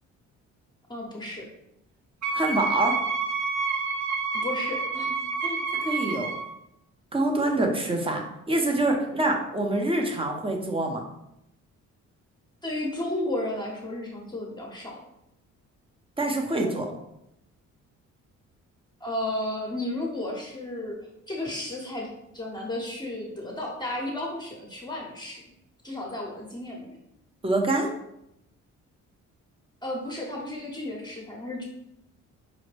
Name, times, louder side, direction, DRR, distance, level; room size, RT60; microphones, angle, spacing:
voice 1, 0.9-1.5 4.3-5.2 5.4-5.6 12.6-15.0 19.0-21.0 21.3-22.1 22.3-25.4 25.8-27.0 29.8-31.6, left 1 dB, 15° left, -2 dB, 0.8 m, -33 dB
Wind instrument woodwind instrument, 2.2-6.5, right 4 dB, 80° right, 0.6 m, -29 dB
voice 2, 2.3-3.0 5.8-6.3 7.1-11.0 16.2-16.9 27.4-27.9, right 2 dB, 20° right, 2 dB, 0.7 m, -25 dB
5.1 x 2.1 x 3.2 m, 0.83 s
cardioid pair, 90°, 30 cm